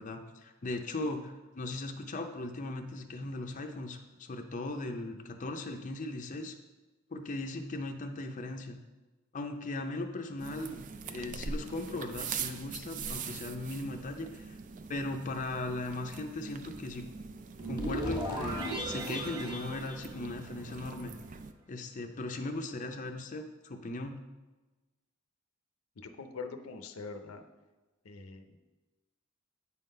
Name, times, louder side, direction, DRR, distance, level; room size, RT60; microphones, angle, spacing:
voice 1, 0.0-6.5 7.1-8.8 9.3-10.8 11.1-14.6 14.9-17.1 17.7-21.1 21.7-24.2, left 2 dB, 35° left, 4 dB, 0.5 m, -38 dB
sound 1, 10.4-21.5, right 5 dB, 40° right, 0.4 m, -43 dB
sound 2, 17.6-20.8, right 1 dB, 20° right, 1.3 m, -36 dB
voice 2, 26.0-27.4 28.0-28.6, left 4 dB, 85° left, 7 dB, 0.7 m, -43 dB
8.2 x 3.8 x 5.4 m, 1.2 s
head